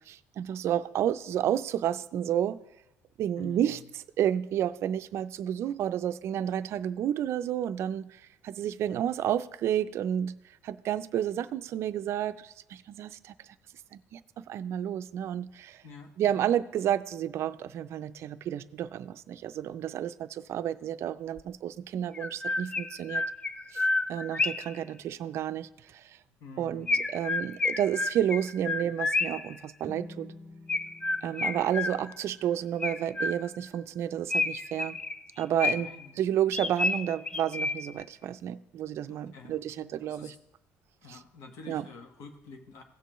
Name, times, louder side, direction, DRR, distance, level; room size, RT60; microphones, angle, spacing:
voice 1, 0.1-2.6 3.2-3.8 4.2-10.4 10.6-13.3 13.9-15.8 16.2-23.2 23.7-26.2 26.6-30.3 31.2-35.0 35.4-35.9 36.2-40.3 41.1-41.2 41.7-41.8, right 10 dB, 55° right, 14 dB, 0.4 m, -31 dB
voice 2, 3.4-3.9 15.8-16.4 26.4-27.1 35.7-36.2 39.1-40.3 41.0-42.8, left 4 dB, 70° left, 4 dB, 1.4 m, -49 dB
Chirp tweet, 21.4-21.5 22.1-24.8 26.9-29.5 30.7-32.3 32.8-33.7 34.3-36.1 36.5-38.0, left 3 dB, 20° left, 0.4 m, -30 dB
sound 1, 29.8-33.4, left 1 dB, 25° right, 0.9 m, -50 dB
16.5 x 6.8 x 3.1 m, 0.90 s
cardioid pair, 135°, 5 cm